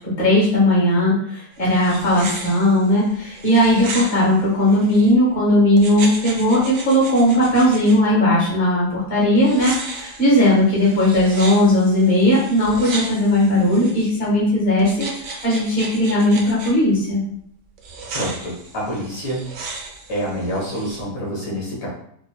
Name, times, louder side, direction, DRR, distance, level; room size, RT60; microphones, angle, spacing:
voice 1, 0.2-15.1 15.4-17.2, left 1 dB, 20° left, -6 dB, 1.3 m, -17 dB
sound 1, 1.5-5.1 5.8-8.0 9.4-14.1 14.8-16.7 17.8-21.0, right 3 dB, 80° right, 1.4 m, -35 dB
voice 2, 18.1-19.4 20.1-21.9, equal, 80° left, -5 dB, 2.0 m, -27 dB
4.8 x 2.7 x 2.2 m, 0.68 s
omnidirectional pair, 2.0 m